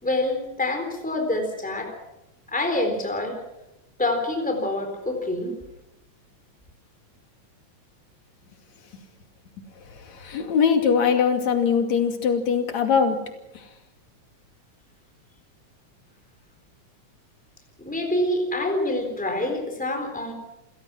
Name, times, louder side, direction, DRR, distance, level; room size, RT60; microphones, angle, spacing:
voice 1, 0.0-2.0 2.5-3.4 4.0-5.6 17.8-20.3, left 1 dB, ahead, 4 dB, 3.7 m, -26 dB
voice 2, 9.9-13.2 13.5-13.6, left 6 dB, 60° left, 4 dB, 3.7 m, -22 dB
28.0 x 16.5 x 6.2 m, 0.91 s
omnidirectional pair, 3.6 m